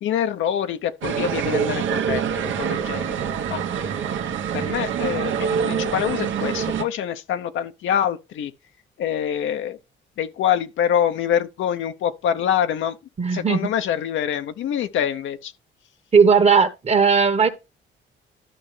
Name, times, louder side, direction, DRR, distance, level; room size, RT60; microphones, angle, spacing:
voice 1, 0.0-3.2 3.5-4.0 4.5-8.5 9.0-9.8 10.2-13.0 13.3-15.5, left 9 dB, 75° left, 0.8 m, -25 dB
sound 1, 1.0-6.8, right 7 dB, 75° right, 1.1 m, -25 dB
voice 2, 13.2-13.6 16.1-17.5, right 5 dB, 35° right, 1.2 m, -16 dB
12.5 x 5.4 x 3.3 m
cardioid pair, 90°, 20 cm